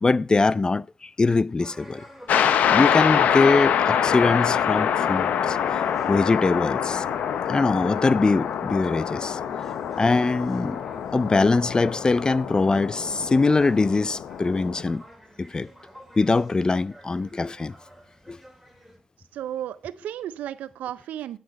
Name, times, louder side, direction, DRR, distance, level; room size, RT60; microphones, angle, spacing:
voice 1, 0.0-2.0 2.6-5.6 6.1-7.0 7.5-9.4 10.0-10.8 11.1-15.0 15.4-15.7 16.2-17.8 18.3-18.4, left 3 dB, 35° left, 0.4 m, -22 dB
sound 1, 1.6-19.0, equal, 5° left, 3.7 m, -48 dB
sound 2, 2.3-14.8, left 8 dB, 80° left, 0.7 m, -25 dB
voice 2, 19.3-21.4, right 11 dB, 85° right, 0.5 m, -33 dB
9.5 x 6.5 x 5.2 m
supercardioid pair, 50°, 3 cm